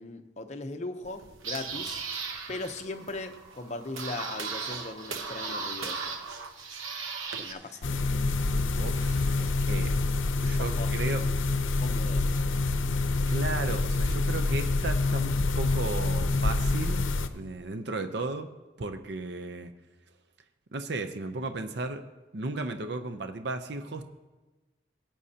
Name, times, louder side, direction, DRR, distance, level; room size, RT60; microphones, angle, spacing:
voice 1, 0.0-2.0 2.5-6.1 7.4-8.1 8.9-9.0 10.6-10.9 11.8-12.2, left 2 dB, 35° left, 6 dB, 0.7 m, -39 dB
sound 1, 1.0-7.5, right 5 dB, 90° right, 0.9 m, -37 dB
sound 2, 7.8-17.3, left 3 dB, 85° left, 0.6 m, -27 dB
voice 2, 8.8-9.9 10.4-11.2 13.3-18.5 18.8-19.7 20.7-22.0 22.3-24.1, right 3 dB, 60° right, 7 dB, 0.6 m, -35 dB
18.0 x 8.9 x 2.8 m, 1.2 s
head